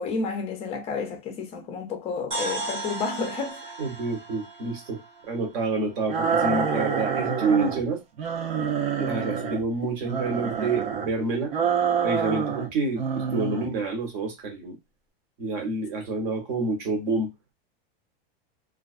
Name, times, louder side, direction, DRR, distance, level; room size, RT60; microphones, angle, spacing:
voice 1, 0.0-3.8, left 4 dB, 20° left, 0.4 m, -31 dB
sound 1, 2.3-6.3, right 2 dB, 20° right, 0.8 m, -36 dB
voice 2, 3.8-5.0 5.3-8.0 8.9-11.5 12.0-14.8 15.4-17.3, right 3 dB, 50° right, 1.0 m, -28 dB
sound 2, 6.1-7.8 8.2-9.6 10.0-11.1 11.5-12.7 12.9-13.7, right 6 dB, 70° right, 0.7 m, -27 dB
2.3 x 2.2 x 2.4 m
supercardioid pair, 160°, 30 cm